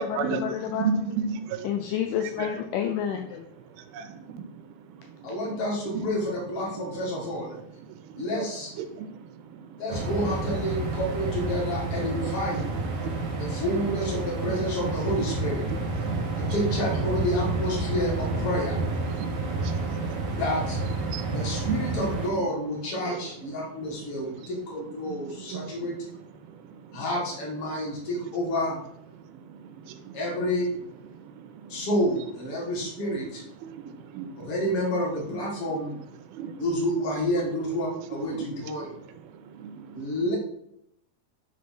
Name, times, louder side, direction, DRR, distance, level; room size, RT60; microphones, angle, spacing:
voice 1, 0.0-0.9 1.6-3.5, left 9 dB, 85° left, 5 dB, 1.9 m, -29 dB
voice 2, 3.9-4.6 8.1-8.2 8.9-9.3 9.6-9.8 13.0-13.1 16.0-16.2 16.4-16.5 19.2-20.0 21.1-21.4 21.7-21.8 23.0-23.2 25.1-25.9 29.8-30.2 31.1-31.2 31.6-31.8 33.6-34.5 36.3-36.7 38.3-38.5 38.8-38.9 39.6-40.0, right 6 dB, 85° right, 9 dB, 2.5 m, -34 dB
voice 3, 5.2-7.6 8.1-8.7 9.8-12.6 13.4-15.6 16.4-18.8 20.4-20.8 21.2-26.0 26.9-28.8 30.1-30.7 31.7-33.4 34.4-36.0 36.6-38.9 39.9-40.4, equal, 40° left, -4 dB, 2.5 m, -29 dB
sound 1, 9.9-22.3, right 3 dB, 65° right, 1.4 m, -29 dB
7.5 x 3.5 x 5.9 m, 0.76 s
omnidirectional pair, 4.4 m